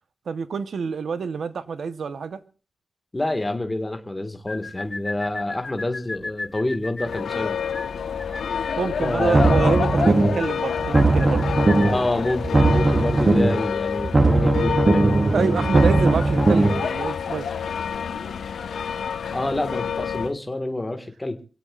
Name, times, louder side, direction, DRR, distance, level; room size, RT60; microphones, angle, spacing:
voice 1, 0.3-2.4 8.8-11.4 15.3-17.5, right 5 dB, 70° right, 0.9 m, -27 dB
voice 2, 3.1-7.6 9.0-9.5 11.8-15.0 19.3-21.4, left 2 dB, 15° left, 1.6 m, -27 dB
sound 1, 4.5-12.5, left 3 dB, 30° left, 1.2 m, -36 dB
sound 2, 7.0-20.3, left 7 dB, 85° left, 1.0 m, -28 dB
sound 3, 9.2-10.5 10.8-12.1 12.4-13.7 14.0-16.8, right 2 dB, 25° right, 0.7 m, -19 dB
26.5 x 17.0 x 2.4 m
wide cardioid pair, 145°, 0 cm